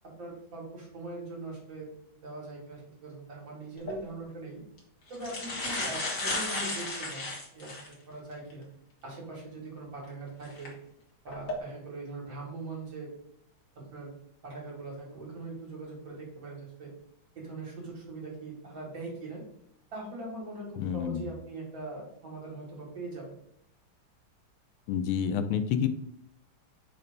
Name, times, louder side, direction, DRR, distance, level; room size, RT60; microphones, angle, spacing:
voice 1, 0.2-4.6 5.1-8.7 9.0-10.7 11.2-13.1 13.9-14.1 14.4-16.9 17.3-19.4 19.9-23.3, right 2 dB, 65° right, -4 dB, 3.1 m, -41 dB
sound 1, 3.8-4.0 4.8-4.9 5.1-7.9 8.5-8.6 10.4-10.7 11.3-11.5, left 2 dB, 45° left, 1.8 m, -34 dB
voice 2, 20.8-21.3 24.9-25.9, left 8 dB, 90° left, 10 dB, 1.5 m, -29 dB
5.5 x 3.3 x 5.2 m, 0.73 s
omnidirectional pair, 2.2 m